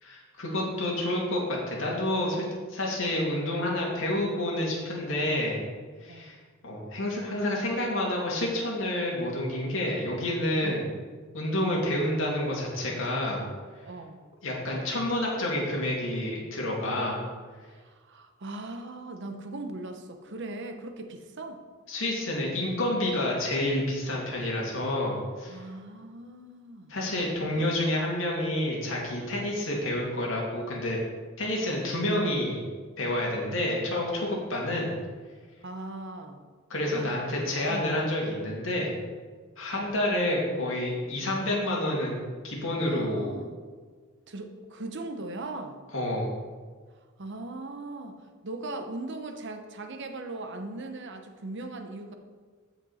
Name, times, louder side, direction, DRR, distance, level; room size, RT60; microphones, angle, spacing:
voice 1, 0.0-5.6 6.0-6.4 6.6-10.9 11.3-13.4 14.4-17.2 21.9-25.6 26.9-31.0 31.4-32.7 33.0-34.9 36.7-38.9 39.6-42.2 42.4-43.3 45.9-46.3, left 1 dB, 65° left, -3 dB, 2.5 m, -29 dB
voice 2, 10.6-10.9 13.8-14.2 17.7-21.6 25.5-27.0 27.5-27.7 29.4-29.6 35.6-36.4 36.9-37.1 37.7-37.9 39.7-40.5 42.8-43.5 44.3-45.8 47.2-48.2 48.4-52.1, right 2 dB, 60° right, 6 dB, 0.9 m, -39 dB
15.0 x 5.3 x 4.2 m, 1.5 s
head